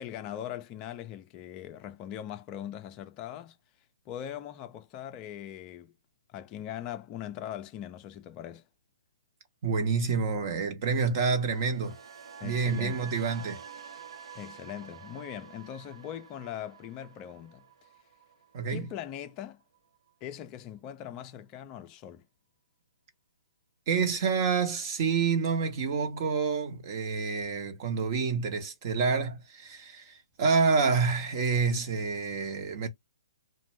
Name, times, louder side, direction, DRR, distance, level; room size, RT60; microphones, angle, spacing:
voice 1, 0.0-3.6 4.1-5.9 6.3-8.7 12.4-13.1 14.3-17.9 18.7-19.6 20.2-22.2, left 11 dB, 25° left, 0.4 m, -41 dB
voice 2, 9.6-12.0 12.4-13.6 18.5-18.9 23.9-32.9, right 5 dB, 40° right, 0.9 m, -28 dB
sound 1, 11.4-19.5 19.7-20.1, right 7 dB, 80° right, 0.7 m, -48 dB
2.5 x 2.2 x 3.1 m
hypercardioid pair, 145°, 3 cm